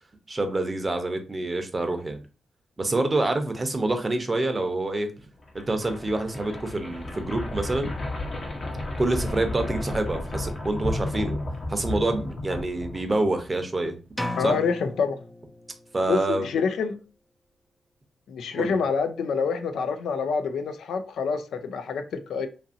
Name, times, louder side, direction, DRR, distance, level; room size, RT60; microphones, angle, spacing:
voice 1, 0.3-2.2 2.8-5.1 5.5-7.9 9.0-11.4 11.7-13.9 14.4-14.6 15.9-16.5 18.5-18.8, right 2 dB, 35° right, 0.7 m, -27 dB
sound 1, 5.4-13.5, left 1 dB, 50° left, 0.8 m, -33 dB
sound 2, 14.2-16.0, left 2 dB, 10° left, 0.5 m, -35 dB
voice 2, 14.4-15.2 16.1-17.0 18.3-22.5, left 5 dB, 75° left, 0.4 m, -27 dB
2.7 x 2.6 x 2.6 m
supercardioid pair, 50°, 0 cm